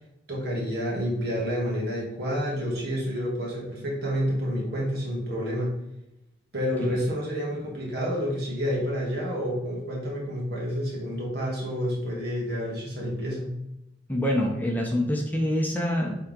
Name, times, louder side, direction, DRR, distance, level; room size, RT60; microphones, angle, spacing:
voice 1, 0.3-5.7 6.5-13.5, equal, 60° right, -4 dB, 2.4 m, -29 dB
voice 2, 14.1-16.2, equal, 10° left, 0 dB, 0.8 m, -25 dB
7.5 x 3.8 x 3.7 m, 0.87 s
head